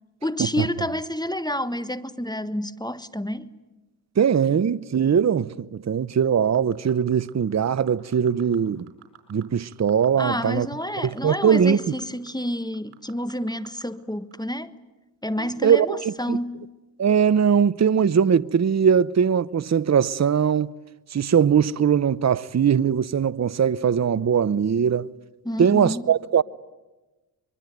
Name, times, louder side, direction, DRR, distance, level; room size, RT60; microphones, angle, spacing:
voice 1, 0.2-3.5 10.2-14.7 15.2-16.7 25.4-26.0, left 1 dB, 10° left, 1.4 m, -29 dB
voice 2, 4.2-8.9 9.3-10.7 11.0-11.8 15.4-16.4 17.0-20.7 21.1-25.1 25.6-26.4, right 7 dB, 35° right, 0.8 m, -21 dB
sound 1, 6.5-7.3 7.7-8.6 8.9-9.4 9.7-12.0 12.3-12.4 12.7-13.8 14.3-14.4, right 13 dB, 85° right, 4.7 m, -49 dB
24.0 x 23.0 x 9.5 m
supercardioid pair, 45°, 49 cm